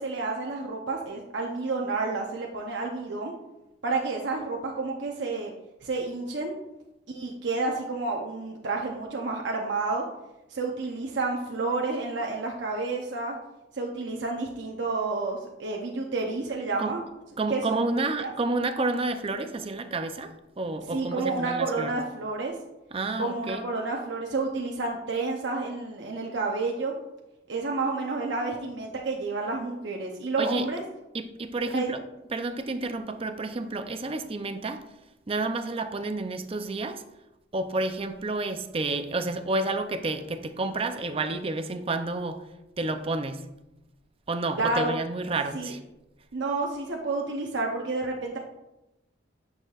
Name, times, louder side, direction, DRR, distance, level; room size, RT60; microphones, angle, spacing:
voice 1, 0.0-3.3 3.8-5.5 5.8-6.5 7.1-10.0 10.5-13.4 13.7-17.0 17.5-17.8 18.2-18.3 20.9-22.5 23.2-26.9 27.5-30.8 31.7-31.9 44.6-44.9 45.5-45.7 46.3-48.4, right 3 dB, 70° right, 0 dB, 0.8 m, -30 dB
voice 2, 17.4-22.0 22.9-23.7 30.4-30.7 31.1-32.0 32.3-34.8 35.3-37.0 37.5-42.4 42.8-43.4 44.3-45.8, right 2 dB, 30° right, 8 dB, 0.5 m, -30 dB
9.1 x 6.5 x 2.4 m, 0.94 s
head